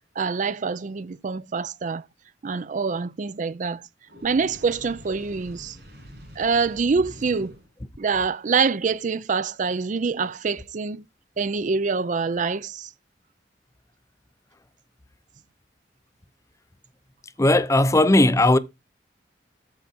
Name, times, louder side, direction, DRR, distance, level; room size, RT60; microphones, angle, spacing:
voice 1, 0.2-2.0 2.4-3.8 4.2-5.8 6.4-7.5 8.0-11.0 11.4-12.9, right 5 dB, 45° right, 0.4 m, -25 dB
Fire, 4.0-7.7, equal, 65° right, 7.0 m, -45 dB
voice 2, 17.4-18.6, left 1 dB, 15° left, 0.6 m, -17 dB
13.5 x 4.9 x 4.4 m
head